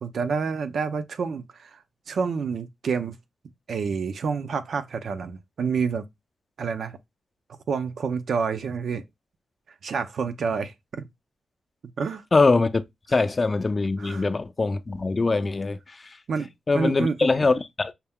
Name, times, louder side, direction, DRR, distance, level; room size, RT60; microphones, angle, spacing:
voice 1, 0.0-3.2 3.7-6.1 6.6-7.0 7.7-9.0 9.8-11.1 12.0-12.2 14.0-14.3 16.3-16.5 16.7-17.2, right 5 dB, 75° right, 0.5 m, -28 dB
voice 2, 12.3-12.8 13.1-16.0 16.7-17.9, left 3 dB, 35° left, 0.5 m, -22 dB
5.7 x 2.1 x 3.5 m
cardioid pair, 75°, 0 cm